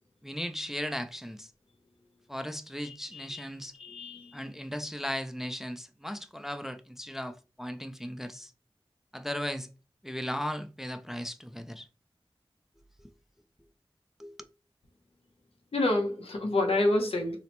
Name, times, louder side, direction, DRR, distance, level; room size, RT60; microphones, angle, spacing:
voice 1, 0.2-1.5 2.3-3.7 4.3-8.5 9.1-9.7 10.0-11.9 13.0-13.1 14.2-14.4, equal, 5° right, 0.3 m, -37 dB
voice 2, 2.8-3.4 3.8-4.4 15.7-17.4, left 2 dB, 85° left, 0.7 m, -28 dB
3.9 x 2.1 x 2.9 m
wide cardioid pair, 65°, 10 cm